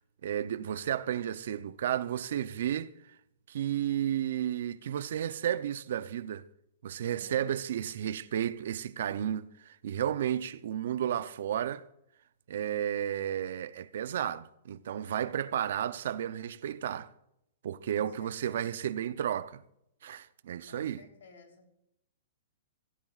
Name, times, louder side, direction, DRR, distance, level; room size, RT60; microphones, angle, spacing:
voice 1, 0.2-2.9 3.5-6.4 6.8-11.8 12.5-17.1 17.6-19.6 20.0-21.0, right 10 dB, 65° right, 0.6 m, -32 dB
voice 2, 7.0-7.5 17.9-18.7 20.7-21.8, left 3 dB, 80° left, 3.4 m, -56 dB
16.5 x 14.5 x 2.4 m
hypercardioid pair, 150°, 0 cm